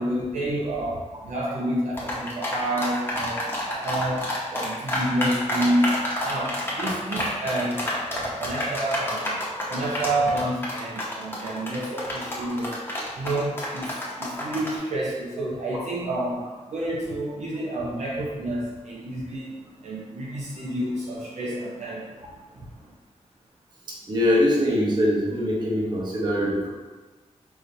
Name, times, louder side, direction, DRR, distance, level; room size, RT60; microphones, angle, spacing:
voice 1, 0.0-9.4 9.7-12.8 13.2-22.1 22.5-22.7, right 1 dB, 65° right, -4 dB, 0.6 m, -29 dB
sound 1, 2.0-14.8, left 1 dB, 20° left, 0.8 m, -28 dB
voice 2, 24.1-26.7, left 1 dB, 35° right, -4 dB, 0.8 m, -22 dB
4.8 x 2.6 x 2.6 m, 1.3 s
wide cardioid pair, 155°, 13 cm